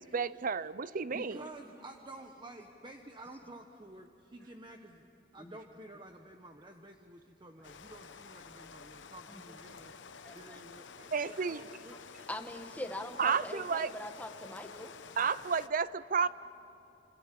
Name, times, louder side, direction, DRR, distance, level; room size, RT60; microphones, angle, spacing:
voice 1, 0.0-1.4 11.1-11.6 13.2-13.9 15.2-16.3, right 6 dB, 50° right, 0.6 m, -31 dB
voice 2, 1.1-5.0 5.3-9.9 10.3-11.9 16.2-16.3, right 1 dB, 25° right, 1.1 m, -51 dB
Rain, 7.6-15.7, left 5 dB, 85° left, 1.0 m, -51 dB
voice 3, 10.2-10.6 12.2-14.9, left 1 dB, 10° left, 1.4 m, -42 dB
28.5 x 26.5 x 7.5 m
head